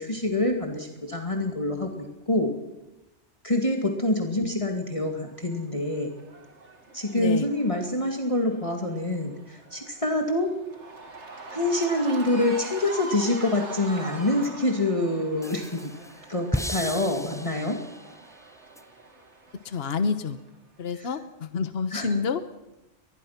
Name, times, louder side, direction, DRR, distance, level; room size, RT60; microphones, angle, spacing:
voice 1, 0.0-2.5 3.4-6.1 6.9-10.6 11.5-15.9 16.3-17.8 21.0-21.1 21.9-22.1, left 1 dB, 25° left, 3 dB, 2.4 m, -26 dB
Cheering / Crowd, 5.2-20.5, right 3 dB, 75° right, 2.8 m, -43 dB
voice 2, 7.1-7.5 19.6-20.4 20.8-22.4, left 5 dB, 60° left, 10 dB, 1.4 m, -28 dB
sound 1, 14.4-14.5 15.4-18.1 18.8-18.9, left 1 dB, 5° left, 0.5 m, -34 dB
23.5 x 21.0 x 5.9 m, 0.98 s
omnidirectional pair, 1.2 m